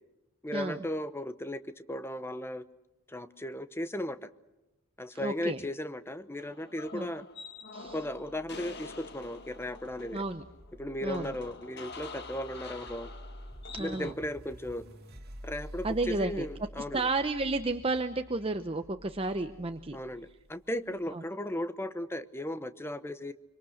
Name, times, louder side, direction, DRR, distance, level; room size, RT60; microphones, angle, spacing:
voice 1, 0.4-2.6 3.1-4.3 5.0-7.2 7.9-10.2 10.8-13.1 13.8-14.9 15.4-17.1 19.9-23.3, left 1 dB, 10° left, 12 dB, 0.9 m, -36 dB
voice 2, 5.1-5.6 6.9-7.1 7.7-8.0 10.1-10.4 11.0-11.3 13.7-14.1 15.8-16.5 16.8-20.0 21.1-21.2, right 2 dB, 25° right, 8 dB, 0.8 m, -32 dB
sound 1, 6.4-14.1, left 4 dB, 50° left, 1.7 m, -47 dB
sound 2, 7.9-21.0, equal, 45° right, 2.7 m, -49 dB
25.5 x 25.0 x 6.5 m, 0.99 s
head